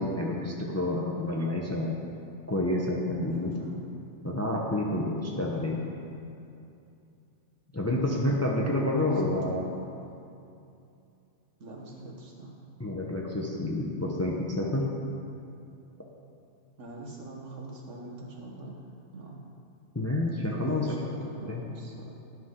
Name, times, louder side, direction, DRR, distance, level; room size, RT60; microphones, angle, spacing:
voice 1, 0.0-2.0 2.5-3.5 4.2-5.8 7.7-9.6 12.8-14.9 19.9-20.9 21.5-21.6, left 1 dB, 15° left, -2 dB, 0.6 m, -29 dB
voice 2, 3.3-3.8 9.0-10.2 11.6-12.5 16.8-18.8 19.1-19.4 20.5-22.2, right 2 dB, 65° right, -2 dB, 1.5 m, -43 dB
12.0 x 5.8 x 3.8 m, 2.6 s
omnidirectional pair, 1.3 m